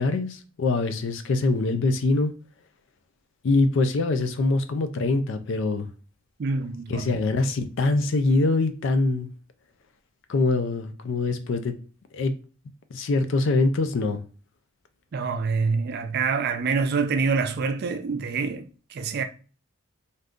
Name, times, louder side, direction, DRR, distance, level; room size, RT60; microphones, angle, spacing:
voice 1, 0.0-2.3 3.4-5.9 6.9-9.3 10.3-11.7 12.1-12.3 12.9-14.2, left 3 dB, 60° left, 0.4 m, -23 dB
voice 2, 6.4-7.1 15.1-19.2, right 4 dB, 50° right, 0.4 m, -26 dB
3.5 x 2.6 x 2.4 m
head